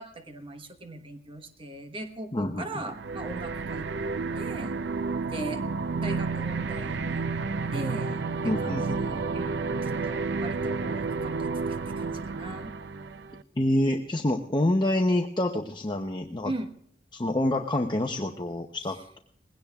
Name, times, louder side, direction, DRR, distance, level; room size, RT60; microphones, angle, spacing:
voice 1, 0.0-3.9 4.4-4.8 5.3-5.7 6.0-7.3 7.7-12.7 16.4-16.7, right 1 dB, 30° right, 6 dB, 1.2 m, -39 dB
voice 2, 2.3-2.6 8.4-9.0 13.6-16.5 17.1-19.2, left 1 dB, 25° left, 4 dB, 0.7 m, -27 dB
sound 1, 2.9-13.4, right 4 dB, 65° right, 0.6 m, -31 dB
20.5 x 16.5 x 2.4 m, 0.65 s
head